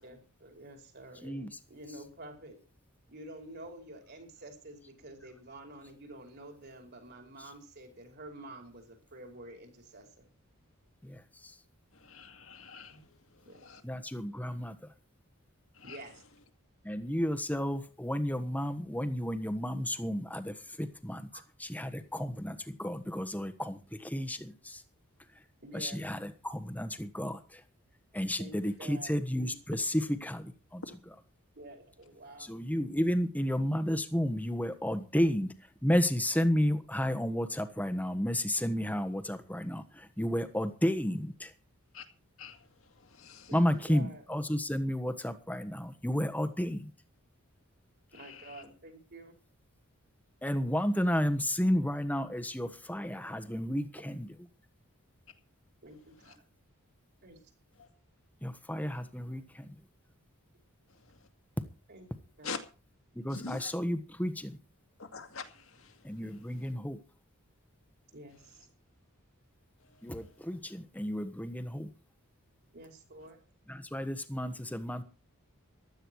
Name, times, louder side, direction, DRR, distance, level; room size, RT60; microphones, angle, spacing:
voice 1, 0.0-2.6 3.1-10.3 12.9-13.0 13.4-13.6 15.8-16.2 21.3-21.4 25.6-26.0 28.4-29.1 31.5-32.5 43.5-44.2 48.1-49.3 55.8-56.4 57.2-57.4 61.9-62.1 62.4-62.5 68.1-68.7 72.7-73.4, right 1 dB, 50° right, 5.2 m, -49 dB
voice 2, 1.2-1.6 11.0-11.6 13.8-14.8 16.8-21.3 21.6-24.8 25.7-27.6 28.1-31.1 32.4-35.5 35.8-41.5 43.5-46.9 50.4-54.3 58.4-59.7 63.1-64.6 66.0-67.0 70.0-71.9 73.7-75.0, equal, 5° left, 1.3 m, -32 dB
voice 3, 12.1-12.9 15.9-16.0 41.9-42.0 42.4-42.6 43.2-43.5 62.4-62.6 63.3-63.7 65.1-65.5, left 5 dB, 70° left, 2.2 m, -42 dB
15.5 x 12.5 x 4.8 m
head